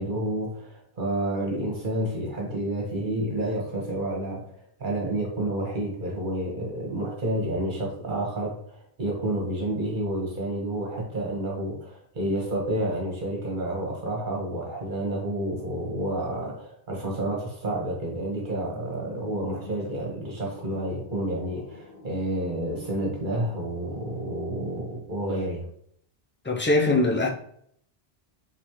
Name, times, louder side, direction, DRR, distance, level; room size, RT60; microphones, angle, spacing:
voice 1, 0.0-25.6, right 1 dB, 50° right, 1.5 m, -30 dB
sound 1, 18.6-24.7, left 3 dB, 55° left, 1.4 m, -48 dB
voice 2, 26.4-27.3, left 2 dB, 15° left, 0.4 m, -22 dB
4.2 x 3.9 x 3.0 m
omnidirectional pair, 1.0 m